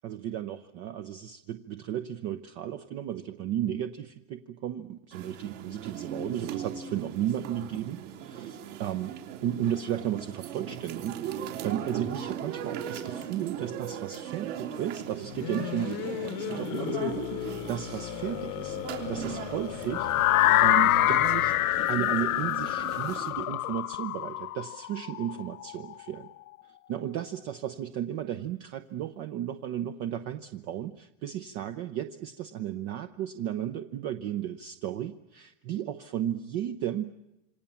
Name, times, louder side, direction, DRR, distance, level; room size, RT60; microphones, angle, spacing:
voice 1, 0.0-9.1 9.4-18.8 19.1-20.1 20.6-21.5 21.9-26.3 26.9-37.0, right 11 dB, 35° right, 9 dB, 0.9 m, -34 dB
sound 1, 5.1-23.3, right 8 dB, 60° right, 3.7 m, -39 dB
sound 2, 15.2-24.0, left 14 dB, 40° left, 1.1 m, -37 dB
sound 3, 19.9-25.8, left 15 dB, 90° left, 0.9 m, -25 dB
27.5 x 25.5 x 7.2 m, 0.93 s
supercardioid pair, 150°, 41 cm